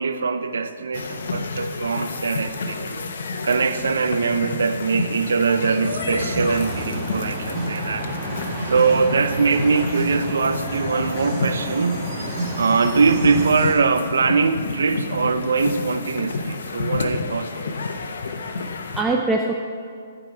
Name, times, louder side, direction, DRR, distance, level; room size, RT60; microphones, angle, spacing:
voice 1, 0.0-3.0 3.4-8.1 8.5-17.7, right 5 dB, 85° right, 10 dB, 0.6 m, -22 dB
sound 1, 0.9-19.0, left 3 dB, 70° left, 0.9 m, -30 dB
sound 2, 5.8-13.7, right 2 dB, 30° right, 1.8 m, -30 dB
voice 2, 18.3-19.5, right 2 dB, 10° right, 1 dB, 0.4 m, -24 dB
12.0 x 5.1 x 5.8 m, 2.2 s
hypercardioid pair, 150°, 0 cm